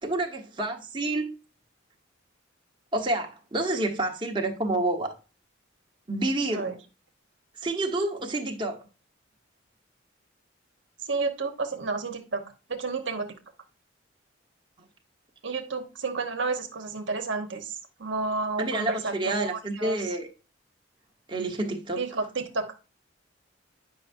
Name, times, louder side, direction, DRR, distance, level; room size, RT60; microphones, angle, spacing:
voice 1, 0.0-1.3 2.9-5.1 6.1-6.7 7.6-8.9 18.6-20.3 21.3-22.0, right 2 dB, 25° right, 1.2 m, -29 dB
voice 2, 11.0-12.4 12.7-13.4 15.4-20.1 22.0-22.7, right 3 dB, 70° right, 1.1 m, -31 dB
9.3 x 5.6 x 2.6 m
head